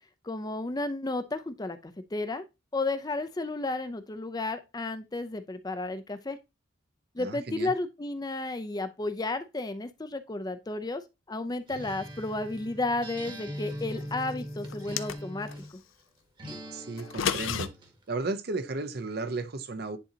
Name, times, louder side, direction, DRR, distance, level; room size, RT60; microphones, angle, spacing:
voice 1, 0.2-2.4 2.7-6.4 7.1-11.0 11.3-15.8, left 2 dB, 20° left, 0.5 m, -33 dB
voice 2, 7.2-7.7 16.7-17.7 18.1-20.0, right 3 dB, 50° right, 0.7 m, -34 dB
Acoustic guitar, 11.7-15.8 16.4-18.0, equal, 25° right, 1.1 m, -41 dB
sound 1, 14.7-15.6 17.0-17.7, left 8 dB, 80° left, 0.5 m, -31 dB
10.0 x 3.9 x 2.8 m
head